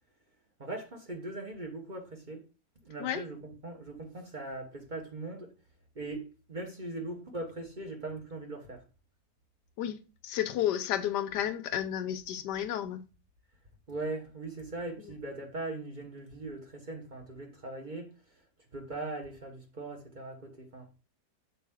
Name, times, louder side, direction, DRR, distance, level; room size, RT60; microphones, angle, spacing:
voice 1, 0.6-2.4 2.8-5.5 5.9-8.8 13.9-18.1 18.7-20.9, right 2 dB, 35° right, 1.1 m, -40 dB
voice 2, 10.2-13.0, left 11 dB, 85° left, 1.3 m, -31 dB
7.0 x 4.3 x 3.5 m
omnidirectional pair, 1.8 m